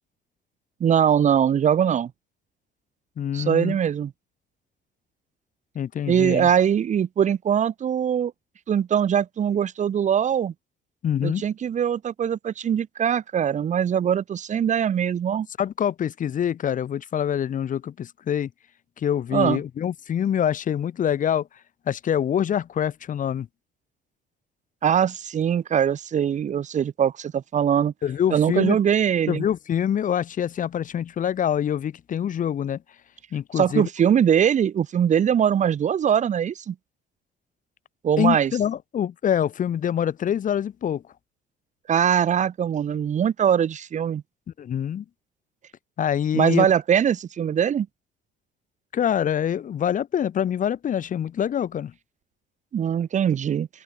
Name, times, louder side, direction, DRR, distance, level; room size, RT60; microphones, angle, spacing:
voice 1, 0.8-2.1 3.3-4.1 6.1-8.3 8.7-10.5 11.2-15.5 19.3-19.6 24.8-27.9 28.3-29.5 33.6-36.7 38.0-38.5 41.9-44.2 46.3-47.9 52.7-53.7, right 8 dB, 45° right, 2.4 m, -22 dB
voice 2, 3.2-3.8 5.7-6.5 11.0-11.4 15.6-18.5 19.0-21.5 21.9-23.5 28.0-28.8 29.3-32.8 33.3-33.9 38.2-41.0 44.6-45.0 46.0-46.7 48.9-51.9, left 9 dB, 50° left, 6.1 m, -25 dB
open air
cardioid pair, 110°, 17 cm